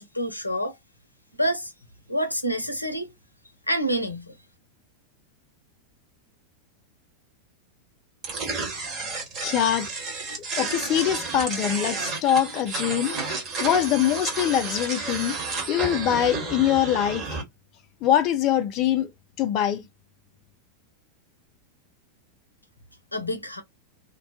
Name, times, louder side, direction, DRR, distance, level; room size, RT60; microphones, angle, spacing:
voice 1, 0.1-0.7 1.4-1.7 2.1-3.1 3.7-4.3 23.1-23.6, equal, 90° left, 0.5 m, -27 dB
sound 1, 8.2-17.4, right 3 dB, 35° right, 1.1 m, -31 dB
voice 2, 9.4-9.9 10.6-13.2 13.6-15.3 15.7-17.4 18.0-19.1 19.4-19.8, left 10 dB, 40° left, 0.3 m, -23 dB
2.5 x 2.1 x 2.6 m
figure-of-eight pair, 90°, 0 cm